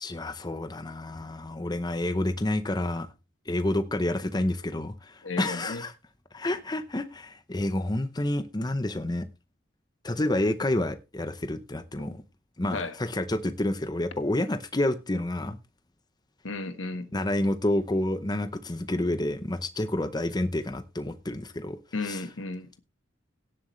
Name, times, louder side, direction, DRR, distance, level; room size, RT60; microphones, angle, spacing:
voice 1, 0.0-3.1 3.5-5.9 6.3-9.3 10.0-12.2 12.6-15.6 17.1-21.8 22.0-22.2, left 1 dB, 20° left, 0.8 m, -29 dB
voice 2, 5.2-5.8 12.7-13.0 16.4-17.2 21.9-22.8, left 3 dB, 75° left, 1.4 m, -34 dB
17.5 x 7.7 x 3.2 m
head